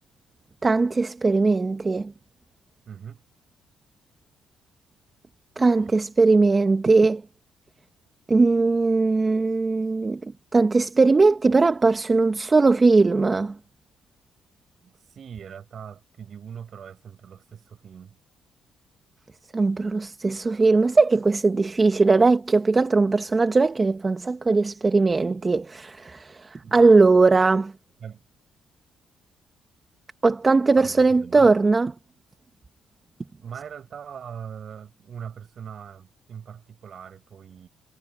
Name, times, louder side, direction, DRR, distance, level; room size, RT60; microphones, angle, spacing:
voice 1, 0.6-2.1 5.6-7.2 8.3-10.2 10.5-13.5 19.5-27.7 30.2-31.9, right 3 dB, 25° right, 1.2 m, -19 dB
voice 2, 2.9-3.2 5.8-5.9 14.8-18.2 26.6-26.9 28.0-28.2 30.8-31.6 33.4-37.7, right 7 dB, 55° right, 7.7 m, -41 dB
cardioid pair, 90°, 0 cm